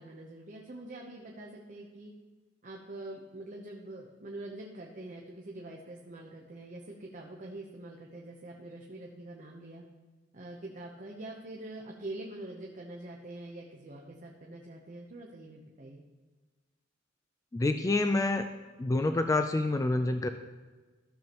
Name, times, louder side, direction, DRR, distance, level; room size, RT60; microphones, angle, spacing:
voice 1, 0.0-2.1 2.6-9.8 10.3-16.0, right 2 dB, 45° right, -1 dB, 0.9 m, -44 dB
voice 2, 17.5-18.4 18.8-20.3, left 2 dB, 15° left, 8 dB, 0.3 m, -27 dB
13.5 x 7.0 x 3.0 m, 1.3 s
head